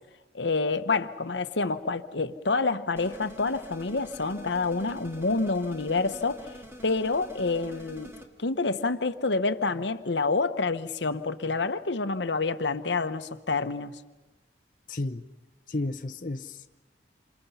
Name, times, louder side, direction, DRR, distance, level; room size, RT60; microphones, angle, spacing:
voice 1, 0.3-6.5 6.8-8.1 8.4-14.0, left 3 dB, 75° left, 1.1 m, -28 dB
sound 1, 3.0-8.3, equal, 15° right, 2.1 m, -46 dB
voice 2, 14.9-15.2 15.7-16.7, left 2 dB, 45° left, 0.8 m, -32 dB
28.0 x 28.0 x 5.7 m
head